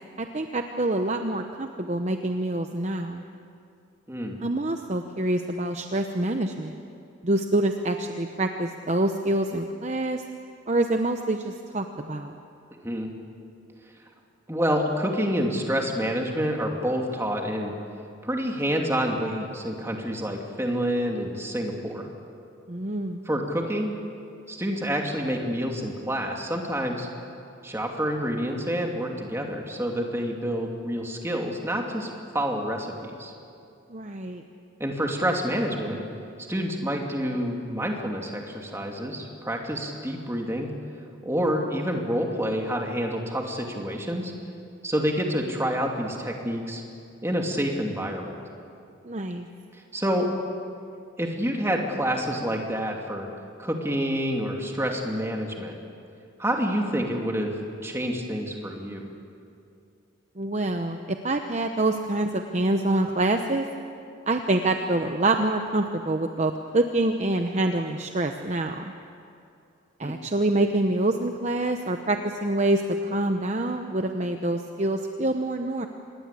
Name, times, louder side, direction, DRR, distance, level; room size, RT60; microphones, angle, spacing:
voice 1, 0.2-3.2 4.4-6.7 7.2-10.2 10.7-12.4 22.7-23.2 33.9-34.4 49.0-49.5 60.4-63.7 64.3-68.8 70.0-75.9, right 2 dB, 35° right, 5 dB, 0.9 m, -26 dB
voice 2, 4.1-4.4 12.7-13.1 14.5-17.7 18.2-22.1 23.2-23.9 24.5-27.1 27.6-33.3 34.8-36.0 36.5-40.7 41.2-44.3 44.8-46.8 47.2-48.4 49.7-50.3 51.2-53.3 53.6-55.8 56.4-59.0 70.0-70.1, equal, 15° right, 1 dB, 2.6 m, -28 dB
26.0 x 21.0 x 8.4 m, 2.6 s
head